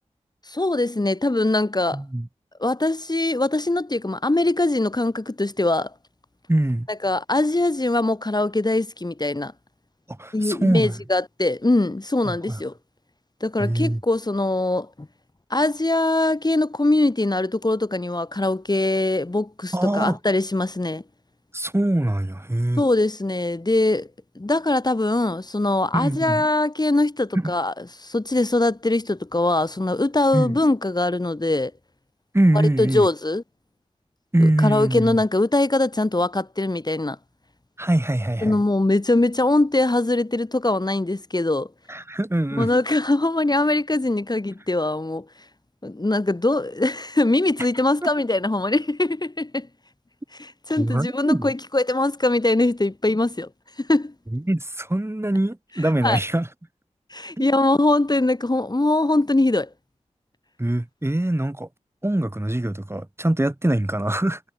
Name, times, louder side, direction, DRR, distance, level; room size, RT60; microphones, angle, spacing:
voice 1, 0.5-2.0 2.6-5.9 6.9-9.5 10.3-12.7 13.4-15.1 15.5-21.0 22.8-24.1 24.4-27.7 28.0-31.7 32.8-33.4 34.6-37.2 38.4-41.7 42.5-45.3 45.8-49.7 50.3-53.5 53.8-54.1 56.0-56.2 57.1-59.7, left 2 dB, 30° left, 3.6 m, -22 dB
voice 2, 1.9-2.3 6.5-6.9 10.1-10.9 12.2-12.6 13.6-14.0 19.7-20.2 21.5-22.8 25.9-26.4 27.3-27.5 30.3-30.6 32.3-33.1 34.3-35.2 37.8-38.6 41.9-42.7 48.0-48.1 50.8-51.5 54.3-56.5 57.4-57.5 60.6-61.7 62.0-64.4, right 1 dB, 20° right, 4.9 m, -23 dB
cardioid pair, 40°, 13 cm